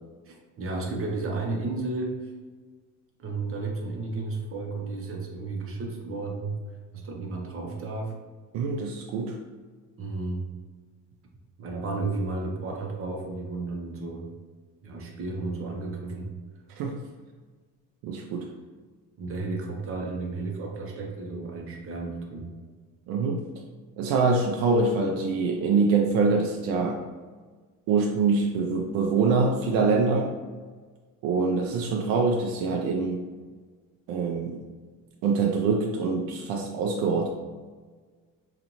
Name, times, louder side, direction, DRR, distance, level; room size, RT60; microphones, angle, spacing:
voice 1, 0.3-2.3 3.2-6.6 6.9-8.2 10.0-10.5 11.6-14.3 14.8-16.3 19.2-22.5, right 3 dB, 40° right, 1 dB, 0.8 m, -33 dB
voice 2, 8.5-9.4 16.8-17.0 18.0-18.5 23.1-23.4 24.0-27.0 27.9-30.3 31.2-33.2 34.1-34.6 35.2-37.3, right 4 dB, 90° right, 0 dB, 0.6 m, -24 dB
5.1 x 2.5 x 2.9 m, 1.5 s
cardioid pair, 135°, 34 cm